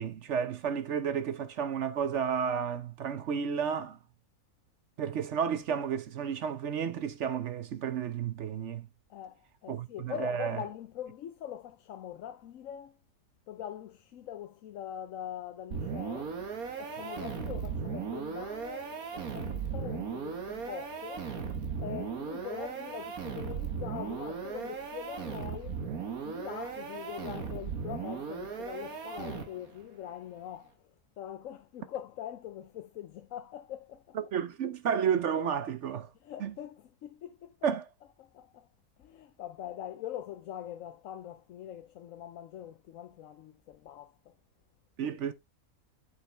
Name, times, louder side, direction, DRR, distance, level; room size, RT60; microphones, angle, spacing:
voice 1, 0.0-4.0 5.0-8.9 9.7-10.6 34.2-36.1 36.4-36.5 37.6-37.9 45.0-45.3, right 7 dB, 60° right, 0.9 m, -32 dB
voice 2, 9.1-13.0 13.5-16.4 16.8-21.3 21.8-25.9 26.2-34.2 36.2-37.6 38.2-38.7 39.0-44.4, left 11 dB, 70° left, 1.0 m, -43 dB
sound 1, 15.7-29.8, right 6 dB, 80° right, 1.9 m, -37 dB
8.4 x 5.6 x 3.2 m
omnidirectional pair, 1.5 m